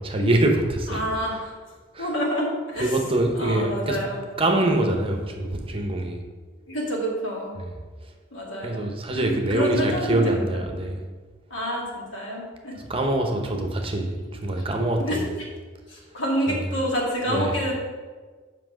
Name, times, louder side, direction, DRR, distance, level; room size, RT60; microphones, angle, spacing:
voice 1, 0.0-1.0 1.3-1.4 1.9-2.1 2.8-4.0 4.4-6.2 7.6-7.7 8.6-11.0 12.9-15.3 16.5-16.7 17.3-17.5, right 1 dB, 30° right, 3 dB, 0.8 m, -24 dB
voice 2, 0.9-1.5 2.0-3.0 3.3-4.2 5.4-5.7 6.7-7.5 8.3-8.8 9.1-10.4 10.8-10.9 11.5-12.7 15.0-15.2 15.9-17.7, equal, 85° left, -2 dB, 2.1 m, -28 dB
5.9 x 5.2 x 6.3 m, 1.4 s
head